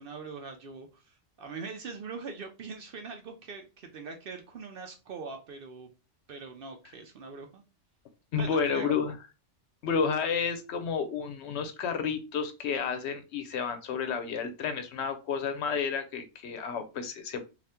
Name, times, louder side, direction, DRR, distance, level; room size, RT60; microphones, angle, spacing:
voice 1, 0.0-5.9 6.3-7.6 8.4-9.0, right 4 dB, 60° right, 4 dB, 0.6 m, -42 dB
voice 2, 8.3-9.1 9.8-17.4, left 6 dB, 70° left, 8 dB, 0.8 m, -31 dB
2.7 x 2.4 x 3.4 m, 0.30 s
omnidirectional pair, 1.2 m